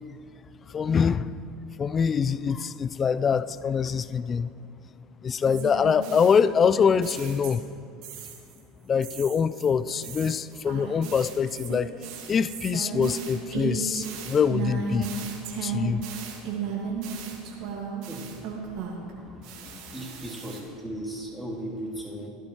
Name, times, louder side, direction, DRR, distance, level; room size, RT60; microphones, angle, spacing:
voice 1, 0.7-1.4 1.8-4.5 5.2-7.6 8.9-11.9 12.3-15.1 15.6-16.1 19.6-19.7, left 6 dB, 30° left, 0.3 m, -24 dB
sound 1, 5.5-7.8 8.0-8.6 9.0-19.1 19.4-20.6, right 6 dB, 60° right, 2.0 m, -35 dB
voice 2, 19.9-22.3, right 1 dB, ahead, 3.2 m, -36 dB
15.5 x 11.5 x 3.1 m
hypercardioid pair, 80°, 0 cm